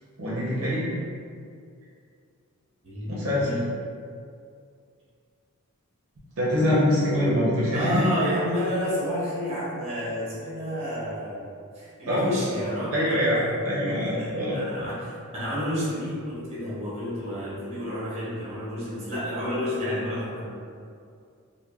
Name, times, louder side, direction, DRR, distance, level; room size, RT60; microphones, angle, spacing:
voice 1, 0.2-0.9 3.1-3.5 6.4-8.0 12.1-12.3 12.9-14.6, left 1 dB, 65° right, -7 dB, 0.6 m, -24 dB
voice 2, 2.8-3.7 7.7-11.5 11.7-13.6 13.9-20.5, equal, 30° right, -9 dB, 0.8 m, -30 dB
3.2 x 2.0 x 2.3 m, 2.3 s
head